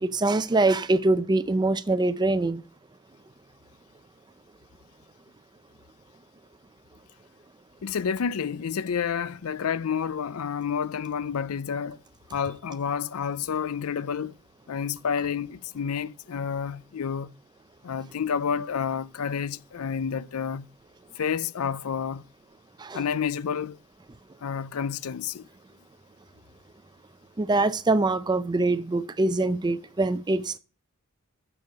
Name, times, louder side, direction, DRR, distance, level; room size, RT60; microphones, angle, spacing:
voice 1, 0.0-2.6 22.8-23.0 27.4-30.6, right 2 dB, 20° right, 0.4 m, -24 dB
voice 2, 7.8-12.0 12.3-14.3 14.7-17.3 17.8-20.7 21.2-22.2 22.9-23.8 24.4-25.5, left 7 dB, 80° left, 0.5 m, -29 dB
10.5 x 7.1 x 4.7 m
head